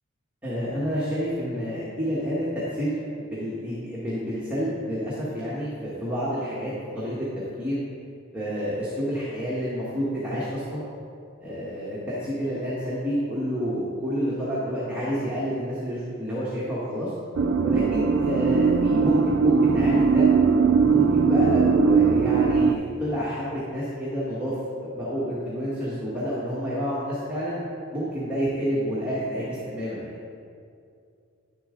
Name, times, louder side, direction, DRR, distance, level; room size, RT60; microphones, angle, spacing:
voice 1, 0.4-7.3 7.6-7.8 8.3-10.8 11.4-17.1 17.6-20.3 20.7-24.5 24.8-27.6 27.9-30.1, equal, 5° right, -10 dB, 1.3 m, -29 dB
sound 1, 17.4-22.7, right 5 dB, 75° right, 0.4 m, -20 dB
10.5 x 7.1 x 3.7 m, 2.4 s
head